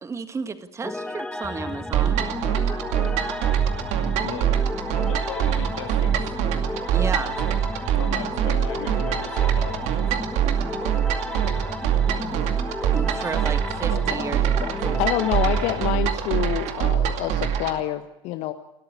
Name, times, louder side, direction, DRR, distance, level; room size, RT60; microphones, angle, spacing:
voice 1, 0.0-2.2 6.9-7.4 12.9-14.5, right 4 dB, 20° right, 11 dB, 1.7 m, -32 dB
sound 1, 0.8-16.9, left 1 dB, 5° left, 1.6 m, -34 dB
sound 2, 1.9-17.8, right 9 dB, 50° right, 2.4 m, -24 dB
voice 2, 4.2-4.6 5.1-6.3 8.0-10.0 13.9-15.7, left 9 dB, 65° left, 4 dB, 2.7 m, -37 dB
voice 3, 15.0-18.5, left 14 dB, 50° left, 9 dB, 1.4 m, -27 dB
29.5 x 13.5 x 9.9 m, 0.91 s
figure-of-eight pair, 75°, 15 cm